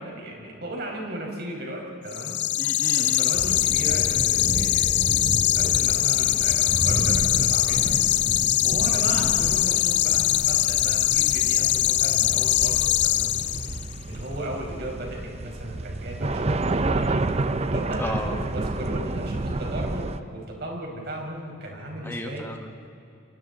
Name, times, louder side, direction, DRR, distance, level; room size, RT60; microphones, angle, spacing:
voice 1, 0.0-2.4 3.0-5.2 5.5-7.9 8.6-13.3 14.1-22.5, right 1 dB, 50° right, 0 dB, 5.0 m, -36 dB
sound 1, 2.1-13.9, left 15 dB, 55° left, 0.5 m, -22 dB
voice 2, 2.6-3.3 18.0-18.4 22.0-22.9, left 1 dB, 10° left, 3 dB, 1.6 m, -34 dB
sound 2, 3.3-20.2, right 2 dB, 30° right, 0.6 m, -30 dB
29.0 x 23.0 x 4.0 m, 2.7 s
head